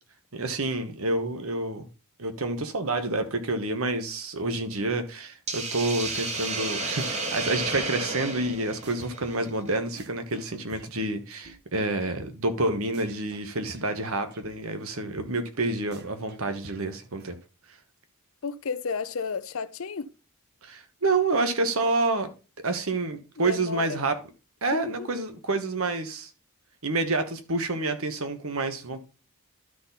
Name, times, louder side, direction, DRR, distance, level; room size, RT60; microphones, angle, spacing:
voice 1, 0.3-1.9 2.2-17.4 20.6-22.3 22.6-24.2 24.6-26.3 26.8-29.0, right 2 dB, 65° right, 1.3 m, -28 dB
Hiss, 5.5-9.7, right 3 dB, 30° right, 1.4 m, -32 dB
sound 1, 7.0-7.5 7.7-11.5 11.8-11.9 12.2-12.3 12.6-12.7 12.9-14.5 14.8-14.9 15.2-15.3 15.5-15.6 15.9-17.3, right 2 dB, 45° right, 1.1 m, -49 dB
voice 2, 18.4-20.1 23.4-24.0 24.7-25.1, left 5 dB, 65° left, 0.6 m, -32 dB
12.5 x 4.2 x 4.0 m
head